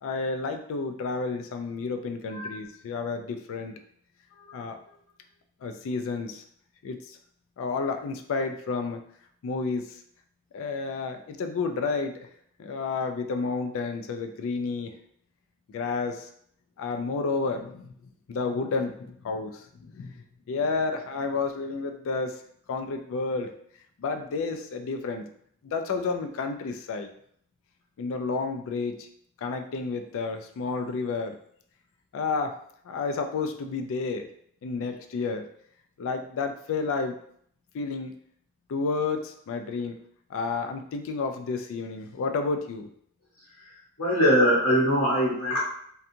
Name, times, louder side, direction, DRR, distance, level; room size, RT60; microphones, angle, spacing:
voice 1, 0.0-3.7 4.5-4.8 5.6-6.4 6.8-7.2 7.6-9.0 9.4-9.9 10.5-12.2 12.6-14.9 15.7-16.3 16.8-17.9 18.3-22.4 22.7-23.5 24.0-25.2 25.6-27.1 28.0-29.1 29.4-31.4 32.1-32.6 32.9-34.3 34.6-35.5 36.0-37.2 37.7-38.1 38.7-40.0 40.3-42.9, left 4 dB, 65° left, 6 dB, 0.3 m, -30 dB
voice 2, 44.0-45.6, equal, 80° left, -7 dB, 0.9 m, -22 dB
2.7 x 2.3 x 2.5 m, 0.65 s
head